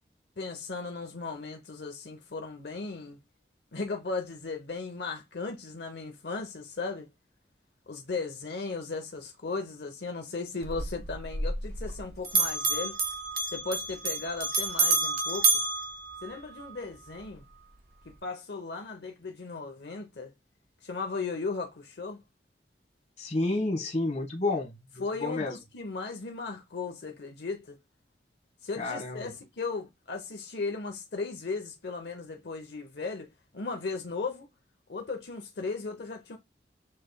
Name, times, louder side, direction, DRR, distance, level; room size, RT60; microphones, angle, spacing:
voice 1, 0.4-3.2 3.7-7.1 7.9-13.0 13.5-15.5 16.2-17.4 18.1-20.3 20.8-22.2 25.0-27.8 28.6-33.3 33.5-34.5 34.9-36.4, left 4 dB, 75° left, 0.8 m, -36 dB
Bell, 10.6-12.0 12.2-16.7, right 3 dB, 55° right, 1.3 m, -29 dB
voice 2, 23.2-24.7 25.2-25.5 28.8-29.3, left 2 dB, 40° left, 1.4 m, -29 dB
7.4 x 3.2 x 2.3 m
head